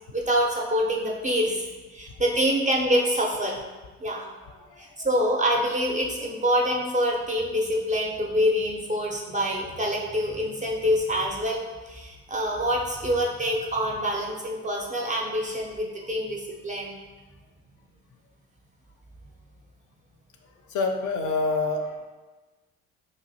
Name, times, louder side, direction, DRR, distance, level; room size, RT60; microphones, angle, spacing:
voice 1, 0.1-1.7 1.9-3.6 4.0-4.2 4.8-11.6 11.9-17.0, equal, 20° right, -1 dB, 0.4 m, -26 dB
voice 2, 20.7-22.1, left 3 dB, 45° left, 4 dB, 0.4 m, -27 dB
2.9 x 2.5 x 2.7 m, 1.3 s
hypercardioid pair, 50°, 43 cm